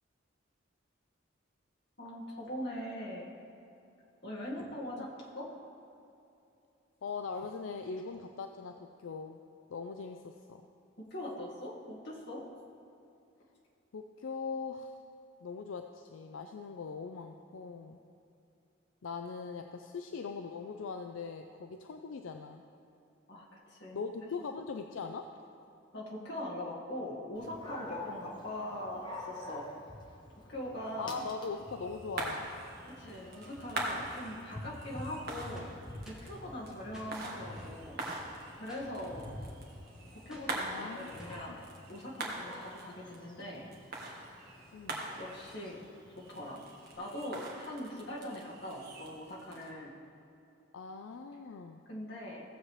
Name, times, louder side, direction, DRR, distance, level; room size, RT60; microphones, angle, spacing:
voice 1, 2.0-3.3 4.2-5.1 5.4-5.5 11.0-12.4 23.3-24.0 25.9-29.7 30.5-31.2 32.9-35.8 36.1-38.0 38.5-39.3 40.3-41.6 41.9-43.7 45.2-45.8 46.2-46.6 47.0-49.9 51.9-52.4, left 1 dB, 60° left, -4 dB, 1.9 m, -41 dB
voice 2, 7.0-9.4 9.7-10.6 13.9-14.9 15.4-18.0 19.0-22.6 23.9-25.3 31.0-32.7 40.7-41.1 41.5-41.6 44.7-45.0 50.7-51.8, left 4 dB, 80° left, 5 dB, 0.4 m, -41 dB
Dog, 27.3-46.9, left 1 dB, 25° left, 1.0 m, -49 dB
sound 1, 31.5-49.7, right 2 dB, 50° right, 1.5 m, -44 dB
sound 2, 35.6-36.4 36.9-37.1 37.6-38.3 38.7-38.9 40.3-40.6 41.2-41.4, equal, 5° right, 1.4 m, -53 dB
16.0 x 7.4 x 3.2 m, 2.7 s
head